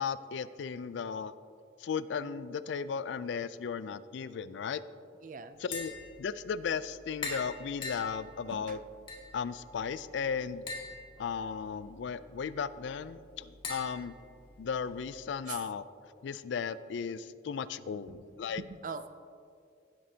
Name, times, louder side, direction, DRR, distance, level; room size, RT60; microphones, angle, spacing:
voice 1, 0.0-1.3 1.8-4.8 5.6-5.9 6.2-8.8 9.3-10.6 11.2-14.1 14.6-15.8 16.2-18.6, left 6 dB, 70° left, 15 dB, 0.3 m, -35 dB
voice 2, 5.2-5.6 8.5-8.8 15.5-15.7 18.1-18.2 18.5-19.1, right 5 dB, 45° right, 11 dB, 0.4 m, -42 dB
Tap, 5.5-15.0, left 3 dB, 30° left, 1.6 m, -45 dB
16.5 x 7.6 x 2.8 m, 2.4 s
head